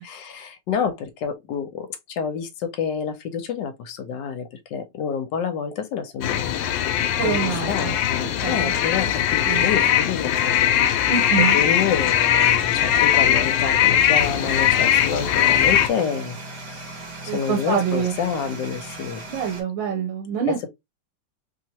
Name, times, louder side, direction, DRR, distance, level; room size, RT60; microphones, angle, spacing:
voice 1, 0.3-6.7 7.2-7.4 7.7-10.7 11.5-16.4 16.7-16.9 17.2-19.2 20.5-20.7, left 7 dB, 75° left, 1.3 m, -28 dB
sound 1, 6.2-15.9, left 10 dB, 90° left, 1.3 m, -20 dB
voice 2, 7.2-8.0 8.4-8.7 9.5-9.7 11.1-11.6 17.2-18.2 19.3-20.7, right 7 dB, 85° right, 1.5 m, -25 dB
sound 2, 14.2-19.6, right 2 dB, 60° right, 1.9 m, -37 dB
3.3 x 2.8 x 2.8 m
omnidirectional pair, 2.0 m